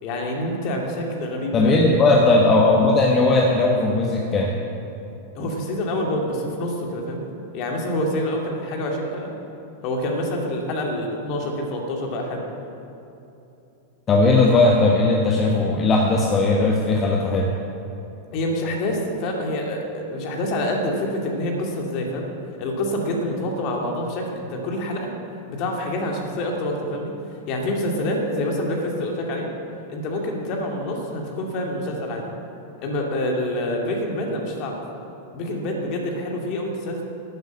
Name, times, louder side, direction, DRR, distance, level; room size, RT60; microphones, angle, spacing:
voice 1, 0.0-1.8 5.4-7.3 7.5-9.3 9.8-12.4 18.3-22.3 22.6-25.1 25.5-27.1 27.5-29.5 29.9-32.3 32.8-34.8 35.3-37.0, left 1 dB, 40° left, 1 dB, 2.4 m, -26 dB
voice 2, 1.5-4.6 14.1-17.5, left 2 dB, 25° left, -1 dB, 1.3 m, -18 dB
12.5 x 8.0 x 8.7 m, 2.9 s
figure-of-eight pair, 90°, 0 cm